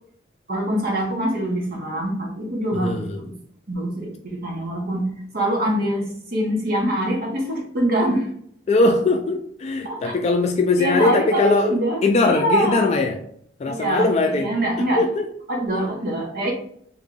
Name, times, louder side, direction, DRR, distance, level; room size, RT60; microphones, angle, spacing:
voice 1, 0.5-3.3 3.7-8.3 9.8-10.1 10.8-12.9 13.6-15.0 15.5-16.5, right 1 dB, 55° right, -1 dB, 1.1 m, -24 dB
voice 2, 2.7-3.2 8.7-11.7 12.0-13.2 13.6-14.5 14.8-15.3, left 3 dB, 40° left, 4 dB, 0.3 m, -20 dB
3.6 x 2.4 x 3.8 m, 0.64 s
head